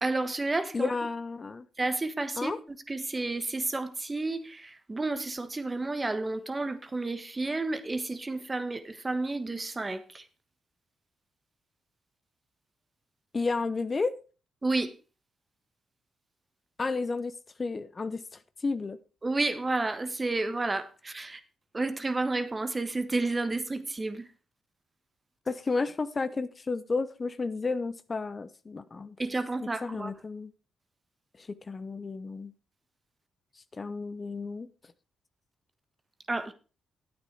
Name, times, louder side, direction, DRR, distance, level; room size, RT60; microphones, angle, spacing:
voice 1, 0.0-0.9 1.8-2.6 2.9-10.3 14.6-15.0 19.2-21.4 21.7-24.3 29.2-30.1 36.3-36.5, right 2 dB, 30° right, 1.3 m, -31 dB
voice 2, 0.7-1.7 2.4-2.6 13.3-14.1 16.8-17.3 17.6-18.2 18.6-19.0 25.5-29.2 29.6-30.5 31.4-32.5 33.7-34.7, left 4 dB, 40° left, 0.7 m, -32 dB
9.7 x 8.7 x 4.7 m
supercardioid pair, 50°, 0 cm